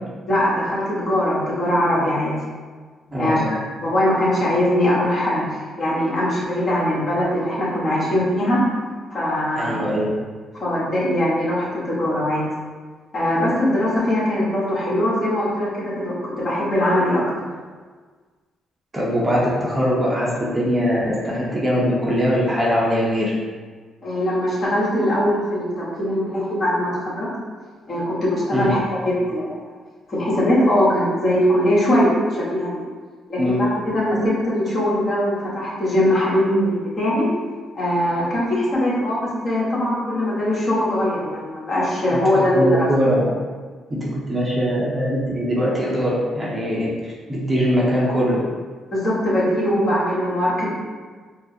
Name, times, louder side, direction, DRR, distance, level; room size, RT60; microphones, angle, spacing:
voice 1, 0.3-2.4 3.2-3.4 3.7-8.6 9.1-9.8 10.5-12.5 13.1-17.2 24.0-27.3 27.9-29.6 30.1-32.8 33.3-37.3 37.7-42.9 48.9-50.7, left 1 dB, 45° left, -7 dB, 1.3 m, -21 dB
voice 2, 3.1-3.5 9.6-10.1 18.9-23.3 28.5-28.7 33.4-33.6 42.1-43.3 43.9-46.9 47.3-48.4, equal, 20° right, -5 dB, 0.8 m, -21 dB
4.5 x 2.0 x 2.8 m, 1.5 s
cardioid pair, 90°, 0 cm